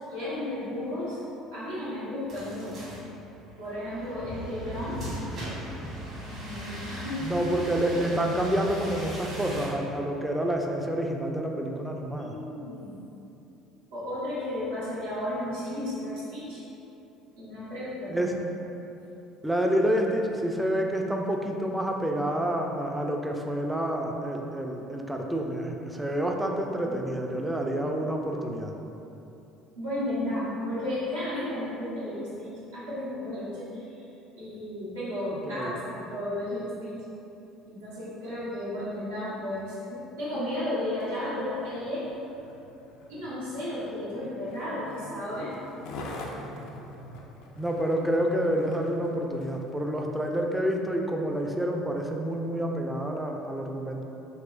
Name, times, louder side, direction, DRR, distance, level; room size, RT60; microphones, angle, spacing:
voice 1, 0.1-1.2 1.5-3.0 3.6-5.0 6.2-7.3 12.2-13.0 13.9-16.6 17.3-18.3 26.8-27.0 29.7-34.0 34.4-36.9 37.7-42.1 43.1-45.5, left 1 dB, 85° right, -13 dB, 1.0 m, -33 dB
sound 1, 2.3-9.7, equal, 55° right, 1.3 m, -38 dB
voice 2, 7.2-12.4 18.1-18.4 19.4-28.7 35.5-35.8 47.6-54.0, right 1 dB, 5° right, 1 dB, 0.4 m, -28 dB
Skateboard, 40.9-49.7 50.3-50.4, left 1 dB, 65° left, 0.4 m, -45 dB
3.4 x 2.9 x 2.5 m, 2.9 s
hypercardioid pair, 60°, 0 cm